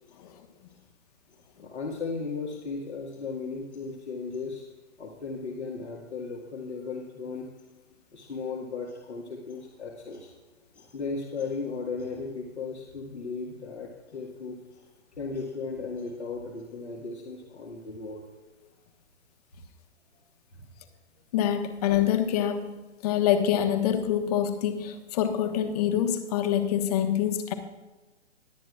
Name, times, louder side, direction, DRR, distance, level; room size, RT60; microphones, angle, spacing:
voice 1, 1.6-4.7 5.0-7.5 8.1-10.3 10.7-14.8 15.2-18.2 20.5-20.7, left 4 dB, 75° left, -1 dB, 1.9 m, -36 dB
voice 2, 21.3-22.7 23.0-27.5, left 10 dB, 35° left, 7 dB, 1.3 m, -25 dB
21.5 x 9.1 x 2.4 m, 1.2 s
figure-of-eight pair, 125°, 34 cm